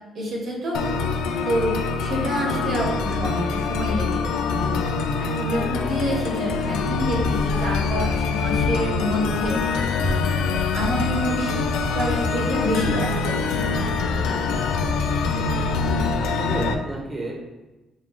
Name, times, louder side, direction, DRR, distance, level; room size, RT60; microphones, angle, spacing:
voice 1, 0.1-0.8 1.4-4.8 5.2-9.6 10.7-11.5 11.9-13.7, equal, 65° right, -2 dB, 1.1 m, -27 dB
sound 1, 0.7-16.7, left 5 dB, 90° left, 0.3 m, -24 dB
sound 2, 5.9-16.1, equal, 90° right, 0.8 m, -34 dB
voice 2, 16.2-17.4, right 1 dB, 20° right, -1 dB, 1.1 m, -32 dB
4.8 x 2.6 x 3.5 m, 1.1 s
cardioid pair, 90°, 0 cm